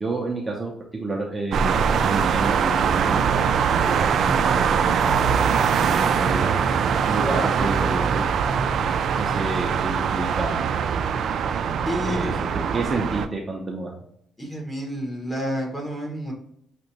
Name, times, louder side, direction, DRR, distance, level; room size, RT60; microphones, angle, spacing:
voice 1, 0.0-3.4 3.7-6.6 7.1-8.3 9.2-10.7 12.0-13.9, right 2 dB, 20° right, -1 dB, 0.8 m, -30 dB
sound 1, 1.5-13.3, right 6 dB, 65° right, 0.4 m, -22 dB
voice 2, 7.1-8.1 11.8-12.3 14.4-16.3, equal, 10° left, 0 dB, 1.5 m, -30 dB
6.3 x 2.6 x 2.9 m, 0.70 s
cardioid pair, 90°, 0 cm